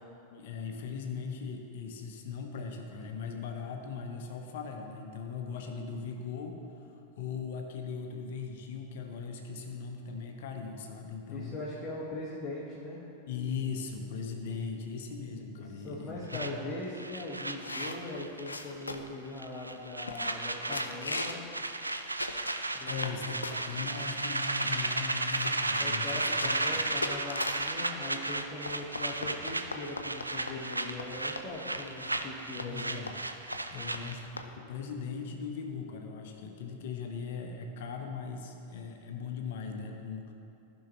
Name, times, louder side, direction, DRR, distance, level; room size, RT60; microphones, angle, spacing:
voice 1, 0.3-6.6 7.2-11.6 13.3-16.6 22.8-26.8 32.6-33.1 33.7-40.3, left 5 dB, 55° left, 3 dB, 0.9 m, -39 dB
voice 2, 11.3-13.0 15.6-21.4 22.7-23.1 25.8-32.9 33.7-33.9, left 2 dB, 25° left, -7 dB, 1.4 m, -40 dB
sound 1, 16.3-18.6 18.8-19.1 19.4-34.3, right 2 dB, 85° right, 0.4 m, -34 dB
sound 2, 17.6-19.2 19.7-19.8 20.1-20.4 20.7-21.4 21.8-23.2 23.4-24.1 24.7-24.8 25.0-27.7 28.4-31.1 31.4-31.5 31.7-31.9 32.1-32.3 32.6-32.7 33.1-33.3 33.5-33.6 33.9-34.0 34.4-34.5, left 3 dB, 80° left, 0.5 m, -39 dB
15.0 x 5.5 x 3.1 m, 2.8 s
figure-of-eight pair, 90°, 0 cm